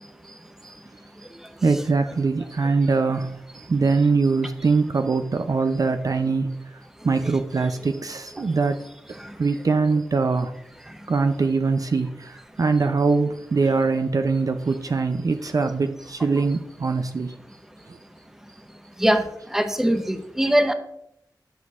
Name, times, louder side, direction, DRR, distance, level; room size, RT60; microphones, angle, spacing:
voice 1, 1.6-6.5 7.0-8.8 9.4-10.5 11.1-12.1 12.6-17.3, right 4 dB, 50° right, 8 dB, 0.4 m, -22 dB
voice 2, 19.0-20.7, right 1 dB, 5° right, 8 dB, 0.7 m, -23 dB
9.7 x 6.0 x 2.4 m, 0.77 s
wide cardioid pair, 75°, 8 cm